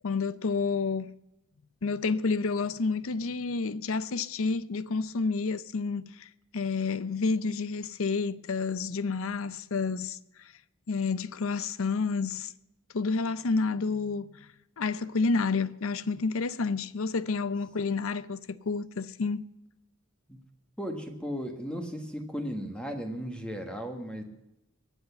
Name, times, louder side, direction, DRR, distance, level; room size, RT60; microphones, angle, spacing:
voice 1, 0.0-1.2 1.8-10.2 10.9-12.5 12.9-14.5 14.8-19.4, left 4 dB, 65° left, 0.6 m, -29 dB
voice 2, 20.8-24.2, equal, 5° left, 1.3 m, -36 dB
22.5 x 8.1 x 6.9 m
head